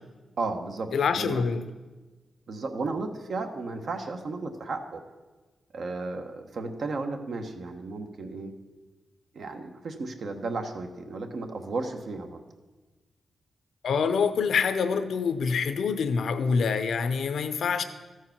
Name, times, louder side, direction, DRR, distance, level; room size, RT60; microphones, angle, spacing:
voice 1, 0.4-1.4 2.5-5.0 5.7-8.5 9.3-12.4, right 3 dB, 65° right, 5 dB, 1.0 m, -34 dB
voice 2, 0.9-1.6 13.8-17.8, left 5 dB, 80° left, 11 dB, 0.6 m, -26 dB
13.5 x 4.7 x 5.8 m, 1.2 s
cardioid pair, 80°, 0 cm